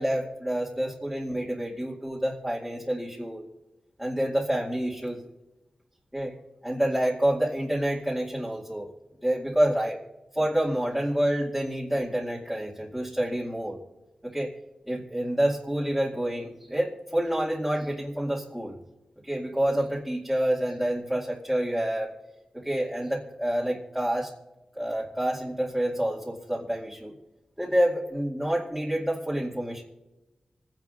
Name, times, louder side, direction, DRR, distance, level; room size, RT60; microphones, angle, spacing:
voice 1, 0.0-3.4 4.0-5.3 6.1-6.4 6.6-8.9 9.2-10.0 10.3-13.8 14.2-14.5 14.9-18.7 19.2-22.1 22.5-24.3 24.7-27.1 27.6-29.8, right 1 dB, ahead, -5 dB, 2.3 m, -28 dB
28.0 x 10.5 x 2.6 m, 1.0 s
wide cardioid pair, 90°, 2 cm